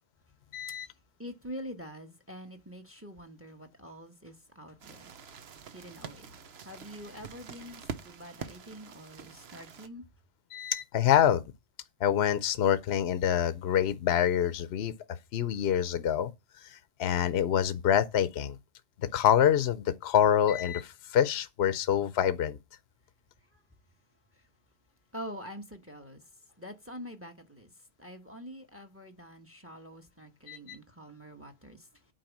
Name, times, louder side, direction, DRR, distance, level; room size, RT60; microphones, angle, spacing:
voice 1, 0.5-0.9 10.5-11.4 12.0-14.9 15.3-16.3 16.6-18.6 19.1-22.6 30.5-30.6, left 9 dB, 70° left, 0.9 m, -26 dB
voice 2, 1.2-5.1 5.7-6.3 6.6-10.0 23.5-23.6 25.1-26.3 26.6-27.7 28.0-31.9, equal, 10° right, 1.2 m, -45 dB
sound 1, 4.8-9.9, right 6 dB, 70° right, 1.1 m, -45 dB
9.0 x 4.7 x 7.2 m
omnidirectional pair, 1.1 m